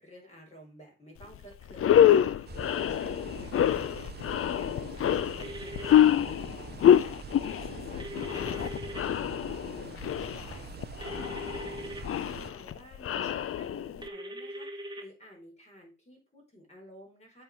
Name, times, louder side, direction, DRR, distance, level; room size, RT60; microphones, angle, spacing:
voice 1, 0.0-17.4, equal, 20° left, 0 dB, 4.6 m, -53 dB
sound 1, 1.2-1.4 1.7-14.1, left 10 dB, 45° left, 0.6 m, -26 dB
sound 2, 2.5-12.5, right 8 dB, 35° right, 0.5 m, -45 dB
sound 3, 5.4-6.0 8.0-9.0 11.0-12.0 14.0-15.0, right 1 dB, 15° right, 1.6 m, -40 dB
7.5 x 4.6 x 5.3 m, 0.33 s
cardioid pair, 90°, 30 cm